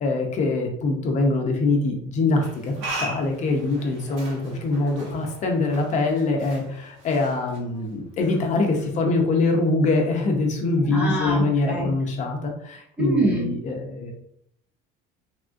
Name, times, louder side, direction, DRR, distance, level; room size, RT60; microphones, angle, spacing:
voice 1, 0.0-14.1, left 3 dB, 35° left, 2 dB, 0.6 m, -24 dB
sound 1, 2.4-8.1, right 2 dB, 65° right, 1.1 m, -38 dB
voice 2, 10.9-11.9 13.0-13.5, right 1 dB, 5° right, -4 dB, 0.3 m, -24 dB
3.5 x 2.3 x 2.5 m, 0.70 s
cardioid pair, 150°, 21 cm